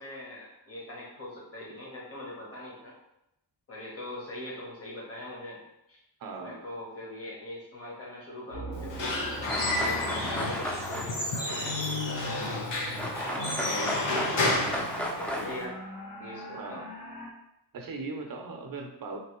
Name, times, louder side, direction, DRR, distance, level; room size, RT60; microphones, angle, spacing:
voice 1, 0.0-2.9 3.7-5.6 5.9-6.0 6.4-12.5 13.4-14.0 15.0-15.8 16.2-16.8, left 1 dB, 35° left, -4 dB, 1.2 m, -42 dB
voice 2, 6.2-6.6 13.2-13.6 16.6-16.9 17.7-19.2, right 3 dB, 55° right, 3 dB, 0.6 m, -39 dB
sound 1, 8.5-17.3, equal, 60° left, 1.0 m, -41 dB
Squeak / Wood, 8.7-15.6, left 2 dB, 85° left, 0.8 m, -31 dB
sound 2, 9.5-12.6 13.0-15.6, equal, 5° left, 0.4 m, -35 dB
3.3 x 2.8 x 2.9 m, 0.84 s
wide cardioid pair, 100°, 42 cm